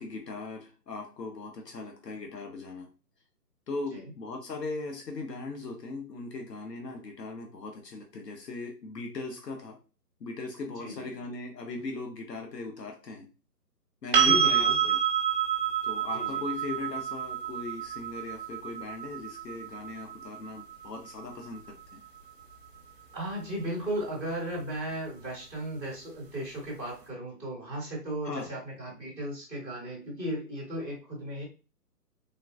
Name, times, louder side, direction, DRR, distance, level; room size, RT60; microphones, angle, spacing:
voice 1, 0.0-2.9 3.7-9.8 10.2-13.3 14.0-15.0 15.8-22.0 28.2-28.5, left 3 dB, 75° left, 2 dB, 0.9 m, -39 dB
voice 2, 10.8-11.1 14.2-14.9 16.1-16.4 23.1-31.4, right 1 dB, 5° left, -4 dB, 1.1 m, -36 dB
sound 1, 14.1-22.0 24.8-24.9, right 8 dB, 35° right, 0.9 m, -28 dB
3.7 x 2.5 x 2.4 m, 0.33 s
hypercardioid pair, 155°, 49 cm